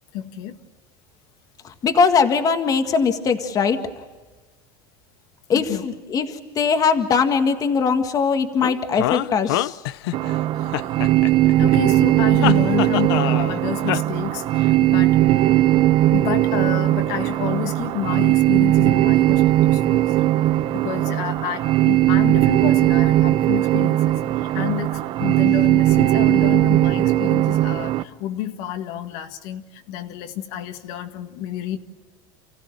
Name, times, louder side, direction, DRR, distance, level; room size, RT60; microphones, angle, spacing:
voice 1, 0.1-0.6 5.5-5.9 11.6-15.2 16.1-20.1 20.7-31.8, left 10 dB, 65° left, 6 dB, 1.9 m, -30 dB
voice 2, 1.6-3.8 5.5-9.8, left 5 dB, 30° left, 7 dB, 1.8 m, -20 dB
sound 1, 8.6-10.4 10.7-11.8 12.4-13.6 13.9-14.0, left 16 dB, 85° left, 0.7 m, -25 dB
sound 2, 10.1-28.0, right 15 dB, 45° right, 1.0 m, -18 dB
29.5 x 15.5 x 8.9 m, 1.3 s
supercardioid pair, 140°, 12 cm